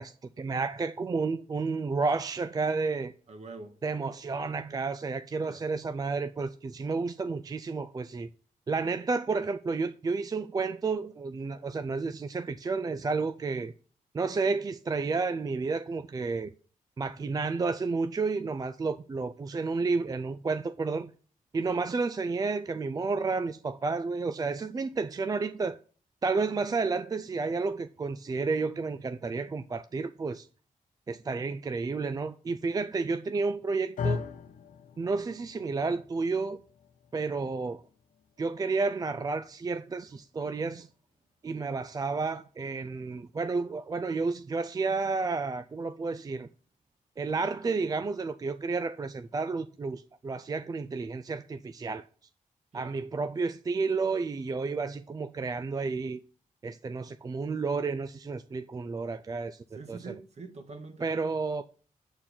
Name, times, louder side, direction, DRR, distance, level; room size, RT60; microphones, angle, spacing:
voice 1, 0.0-3.1 3.8-8.3 8.7-13.7 14.1-16.5 17.0-21.1 21.5-25.8 26.2-30.5 31.1-34.2 35.0-36.6 37.1-37.8 38.4-40.9 41.4-46.5 47.2-52.0 52.7-56.2 56.6-60.0 61.0-61.6, right 4 dB, 25° right, 0.4 m, -31 dB
voice 2, 3.3-3.7 5.4-5.6 52.7-53.0 59.7-61.1, right 4 dB, 50° right, 1.5 m, -44 dB
sound 1, 34.0-42.2, left 5 dB, 70° left, 0.7 m, -41 dB
8.3 x 4.5 x 5.8 m
wide cardioid pair, 110°, 14 cm